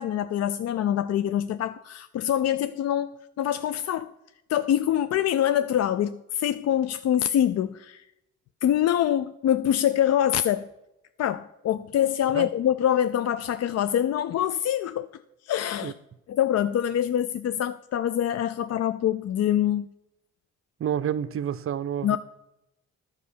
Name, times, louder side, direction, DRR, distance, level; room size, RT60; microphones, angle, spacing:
voice 1, 0.0-3.1 3.4-4.1 4.5-8.0 8.6-10.7 11.2-15.1 15.4-15.9 16.3-19.9 22.0-22.2, left 10 dB, 50° left, 0.4 m, -25 dB
voice 2, 20.8-22.2, right 9 dB, 40° right, 0.6 m, -29 dB
11.0 x 5.4 x 6.8 m
supercardioid pair, 60°, 34 cm